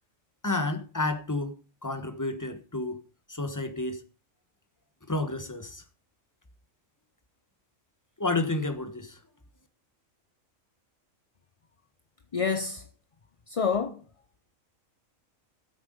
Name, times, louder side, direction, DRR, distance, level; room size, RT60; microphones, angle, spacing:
voice 1, 0.4-3.0 3.3-4.0 5.1-5.8 8.2-9.2, left 2 dB, 15° left, 1.3 m, -30 dB
voice 2, 12.3-12.9 13.5-14.0, left 5 dB, 35° left, 0.6 m, -28 dB
14.0 x 8.2 x 5.2 m
omnidirectional pair, 1.4 m